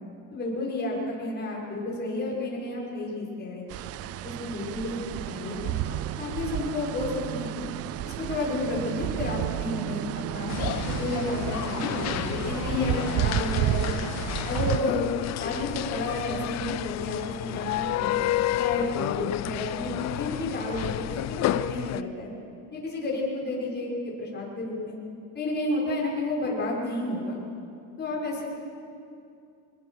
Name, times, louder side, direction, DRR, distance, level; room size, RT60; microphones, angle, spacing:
voice 1, 0.3-3.7 4.2-7.7 8.0-10.5 10.9-14.0 14.4-15.1 15.4-18.2 18.5-22.3 22.7-25.0 25.3-27.4 28.0-28.4, left 2 dB, 25° left, -4 dB, 6.0 m, -31 dB
sound 1, 3.7-14.8, right 14 dB, 35° right, 0.4 m, -31 dB
sound 2, 10.5-22.0, left 14 dB, 40° left, 0.5 m, -30 dB
23.0 x 21.0 x 6.5 m, 2.5 s
cardioid pair, 140°, 42 cm